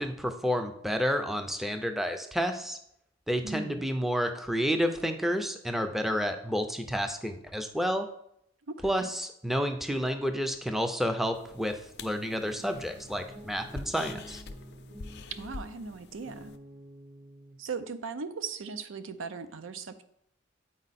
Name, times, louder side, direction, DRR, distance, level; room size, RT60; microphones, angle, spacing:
voice 1, 0.0-2.8 3.3-8.1 8.8-14.4, equal, ahead, 6 dB, 0.5 m, -30 dB
voice 2, 3.4-3.8 8.7-9.1 15.3-16.5 17.6-20.0, right 4 dB, 75° right, 10 dB, 0.5 m, -38 dB
sound 1, 11.3-16.6, left 3 dB, 60° left, 0.5 m, -46 dB
sound 2, 12.1-17.6, right 1 dB, 50° right, 0.9 m, -50 dB
8.6 x 4.5 x 4.1 m, 0.75 s
head